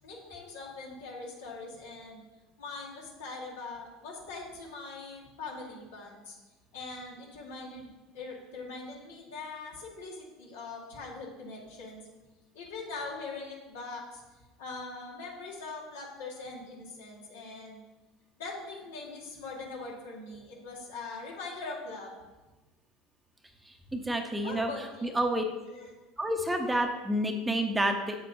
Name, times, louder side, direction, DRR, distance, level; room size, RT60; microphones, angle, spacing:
voice 1, 0.0-2.2 2.6-6.3 6.7-12.0 12.5-14.2 14.6-17.8 18.4-22.1 24.4-25.1 25.7-25.9, left 3 dB, 85° left, -2 dB, 1.9 m, -42 dB
voice 2, 23.9-24.7 25.0-25.4 26.2-28.2, right 1 dB, 10° right, 4 dB, 0.8 m, -29 dB
7.6 x 7.3 x 2.8 m, 1.1 s
hypercardioid pair, 90°, 0 cm